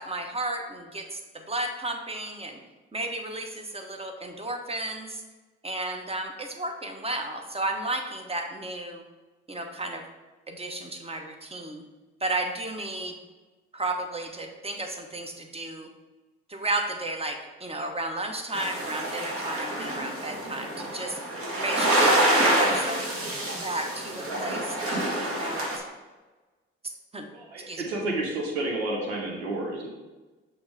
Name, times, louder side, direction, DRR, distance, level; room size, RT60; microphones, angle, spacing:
voice 1, 0.0-2.6 2.9-5.2 5.6-9.0 9.5-10.0 10.5-11.8 12.2-13.2 13.7-15.9 16.5-21.2 21.6-23.0 23.6-25.8 26.8-27.3 27.7-28.0, right 2 dB, 20° right, 4 dB, 1.1 m, -33 dB
sound 1, 18.5-25.8, right 1 dB, 45° right, 1.6 m, -26 dB
voice 2, 27.3-29.9, right 2 dB, 85° right, 0 dB, 0.9 m, -30 dB
5.9 x 3.3 x 4.8 m, 1.2 s
hypercardioid pair, 45°, 31 cm